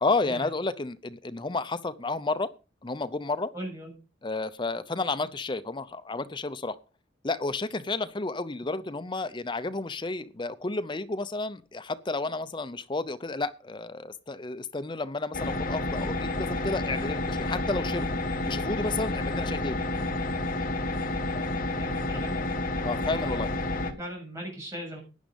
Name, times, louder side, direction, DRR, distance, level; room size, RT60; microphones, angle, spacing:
voice 1, 0.0-2.5 2.8-3.5 4.2-6.8 7.2-19.8 22.8-23.5, left 3 dB, 25° left, 13 dB, 0.6 m, -31 dB
voice 2, 3.5-3.9 21.7-22.4 22.7-25.0, equal, 15° right, -1 dB, 7.6 m, -39 dB
sound 1, 15.3-23.9, left 2 dB, 45° left, 1.8 m, -30 dB
11.5 x 10.0 x 5.2 m, 0.32 s
head